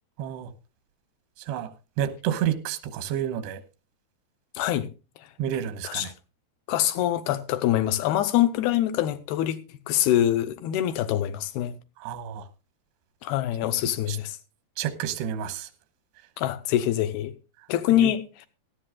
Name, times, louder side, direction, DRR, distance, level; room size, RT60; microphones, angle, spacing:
voice 1, 0.2-0.5 1.5-1.7 2.0-3.6 5.4-6.1 12.0-12.4 14.1-14.2 14.8-15.7 18.0-18.1, right 10 dB, 90° right, 3.1 m, -29 dB
voice 2, 4.6-4.9 5.8-6.1 6.7-9.6 9.9-11.7 13.2-14.4 16.4-17.3 17.7-18.5, left 12 dB, 75° left, 2.6 m, -24 dB
17.5 x 13.0 x 2.3 m
omnidirectional pair, 4.7 m